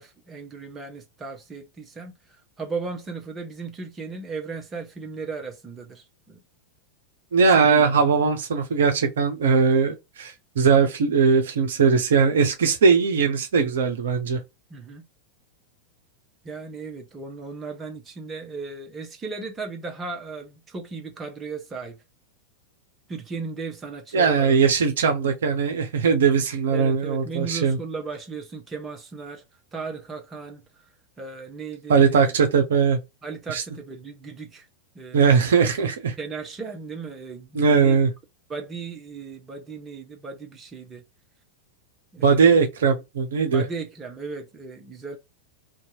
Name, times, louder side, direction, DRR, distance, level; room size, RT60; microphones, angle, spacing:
voice 1, 0.0-6.4 7.5-7.9 14.7-15.0 16.4-22.0 23.1-24.6 26.7-29.4 29.7-30.6 31.2-32.3 33.2-34.7 34.9-35.4 36.2-38.0 38.5-41.0 42.1-42.6 43.5-45.2, right 4 dB, 20° right, 0.7 m, -36 dB
voice 2, 7.3-14.4 24.1-27.8 31.9-33.0 33.5-33.6 35.1-36.1 37.5-38.1 42.2-43.6, right 5 dB, 60° right, 0.6 m, -20 dB
2.7 x 2.2 x 2.6 m
figure-of-eight pair, 90°, 0 cm